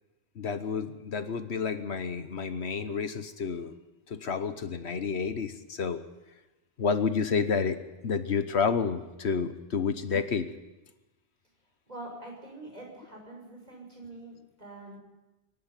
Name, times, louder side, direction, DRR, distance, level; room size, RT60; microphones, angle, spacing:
voice 1, 0.4-3.7 4.1-6.0 6.8-10.5, left 5 dB, 70° left, 10 dB, 1.3 m, -30 dB
voice 2, 11.9-15.0, right 2 dB, 35° right, 0 dB, 6.3 m, -45 dB
23.5 x 11.0 x 9.8 m, 1.1 s
omnidirectional pair, 1.2 m